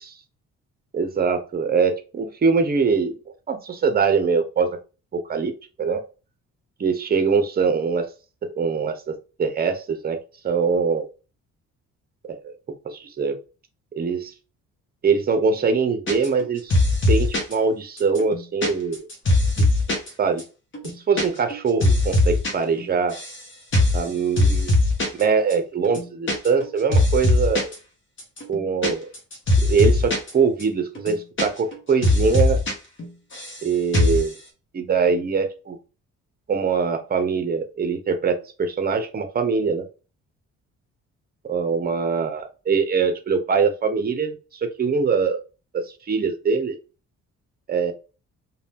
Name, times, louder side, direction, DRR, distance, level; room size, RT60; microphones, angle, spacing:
voice 1, 0.9-3.1 3.5-4.8 5.1-5.5 5.8-6.0 6.8-8.1 8.6-10.2 10.4-11.1 12.4-12.5 12.8-13.4 13.9-14.3 15.0-16.7 17.1-19.1 19.6-19.7 20.2-20.4 21.1-23.2 23.9-24.7 25.2-27.7 28.5-29.1 29.6-32.6 33.6-34.3 34.7-35.8 36.5-39.9 41.5-45.4 45.7-46.8 47.7-47.9, right 5 dB, 30° right, 8 dB, 0.6 m, -23 dB
sound 1, 16.1-16.4 16.7-17.5 18.0-20.1 20.4-20.5 20.7-21.2 21.5-22.5 22.8-23.4 23.7-24.0 24.4-25.2 25.5-25.6 25.8-26.7 26.9-27.7 28.2-30.3 30.6-30.7 30.9-31.8 32.0-32.7 33.0-33.6 33.9-34.3, left 2 dB, 40° left, 1.0 m, -20 dB
2.6 x 2.2 x 3.5 m, 0.33 s
cardioid pair, 90°, 30 cm